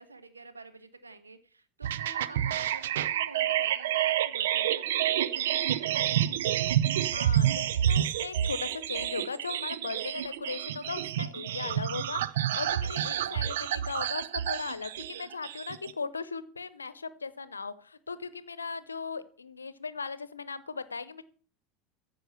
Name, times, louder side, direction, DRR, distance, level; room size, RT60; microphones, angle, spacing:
voice 1, 0.0-6.3 12.8-13.4, right 3 dB, 80° right, 9 dB, 1.2 m, -48 dB
sound 1, 1.8-15.9, right 11 dB, 65° right, 0.5 m, -29 dB
voice 2, 7.1-21.2, left 4 dB, 80° left, 16 dB, 0.8 m, -38 dB
14.5 x 5.4 x 6.8 m, 0.41 s
figure-of-eight pair, 75°, 0 cm